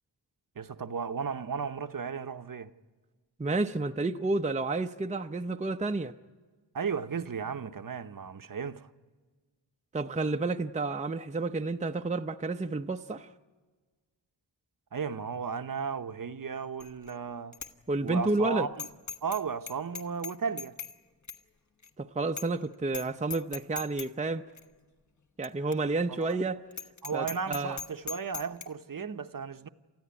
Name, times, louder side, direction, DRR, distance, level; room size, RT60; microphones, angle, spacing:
voice 1, 0.6-2.7 6.7-8.9 14.9-17.5 18.0-18.9 19.2-20.7 26.1-26.4 27.0-29.7, right 6 dB, 50° right, 0.9 m, -35 dB
voice 2, 3.4-6.1 9.9-13.3 17.9-18.7 22.0-24.4 25.4-26.6 27.1-27.8 29.0-29.2, right 3 dB, 15° right, 0.6 m, -30 dB
Bicycle bell, 16.8-17.1 17.5-17.7 18.1-18.2 18.8-19.4 19.7-20.9 21.3-21.4 21.8-21.9 22.4-22.6 22.9-23.0 23.3-24.1 24.6-24.7 25.4-25.5 25.7-25.8 26.2-26.3 26.7-28.7, left 5 dB, 40° left, 1.3 m, -39 dB
30.0 x 13.5 x 9.6 m
cardioid pair, 60°, 44 cm